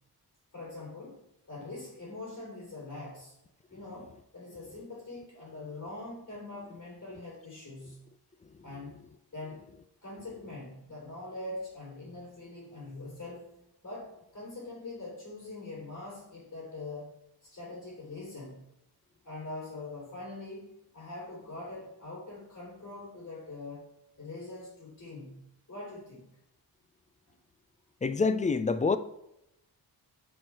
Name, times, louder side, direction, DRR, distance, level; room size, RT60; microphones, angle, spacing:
voice 1, 0.5-3.3 3.7-8.0 8.6-9.0 9.3-9.7 10.0-17.1 17.4-18.6 19.2-23.9 24.2-25.4 25.7-26.3 27.3-27.4, left 2 dB, 40° left, 3.2 m, -43 dB
voice 2, 28.0-29.0, left 4 dB, 20° left, 0.3 m, -26 dB
8.2 x 4.5 x 4.7 m
wide cardioid pair, 130°, 39 cm